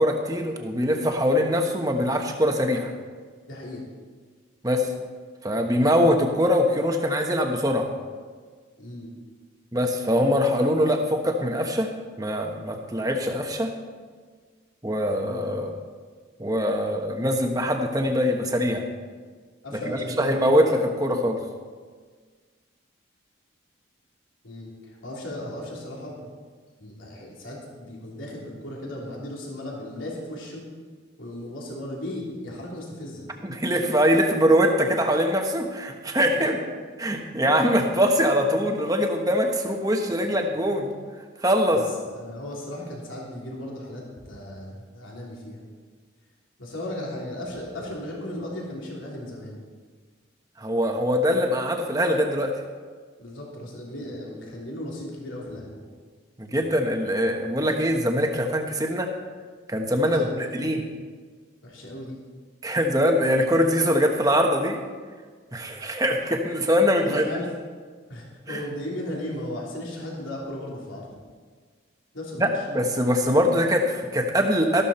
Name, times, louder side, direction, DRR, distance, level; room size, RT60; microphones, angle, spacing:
voice 1, 0.0-2.9 4.6-4.9 5.4-7.9 9.7-11.9 12.2-13.7 14.8-15.7 16.4-18.8 19.9-21.4 33.4-36.6 37.0-40.9 41.4-41.8 50.6-52.5 56.4-59.1 59.7-60.8 62.6-64.8 65.5-67.2 68.5-68.6 72.4-74.8, equal, 20° right, 3 dB, 1.2 m, -23 dB
voice 2, 3.5-3.8 8.8-9.1 15.3-15.5 19.6-20.4 24.4-26.3 26.8-30.6 31.2-33.3 36.3-36.6 41.7-41.8 42.1-45.6 46.6-49.6 53.2-55.8 60.0-60.8 61.6-62.2 67.0-67.5 68.1-71.1 72.1-72.5, left 1 dB, 75° left, -3 dB, 3.3 m, -36 dB
13.5 x 12.5 x 4.4 m, 1.6 s
head